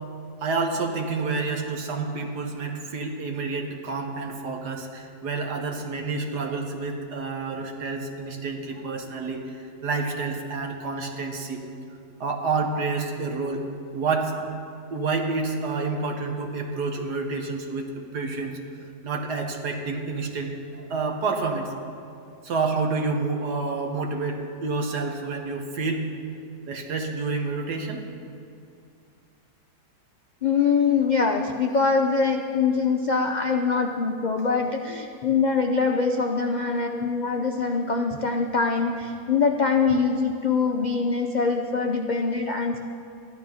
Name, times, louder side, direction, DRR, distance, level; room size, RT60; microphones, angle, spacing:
voice 1, 0.4-9.4 9.8-11.6 12.2-13.6 13.9-14.4 14.9-18.6 19.0-21.7 22.4-26.0 26.7-28.1, right 4 dB, 85° right, 3 dB, 1.8 m, -29 dB
voice 2, 30.4-42.8, left 5 dB, 80° left, 3 dB, 0.4 m, -23 dB
13.5 x 11.5 x 5.6 m, 2.4 s
omnidirectional pair, 1.7 m